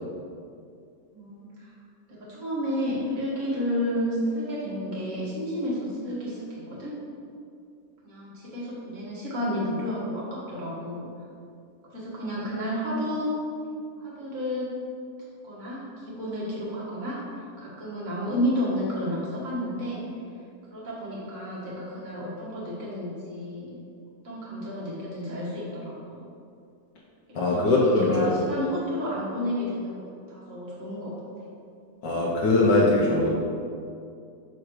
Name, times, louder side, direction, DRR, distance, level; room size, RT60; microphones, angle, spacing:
voice 1, 1.1-1.7 2.1-7.0 8.0-11.1 11.9-13.3 14.0-14.7 15.4-20.0 20.7-23.8 24.2-26.2 27.3-31.2, equal, 25° right, -8 dB, 1.8 m, -31 dB
voice 2, 27.3-28.3 32.0-33.3, left 2 dB, 85° left, -5 dB, 1.7 m, -21 dB
6.1 x 5.0 x 4.9 m, 2.4 s
omnidirectional pair, 1.8 m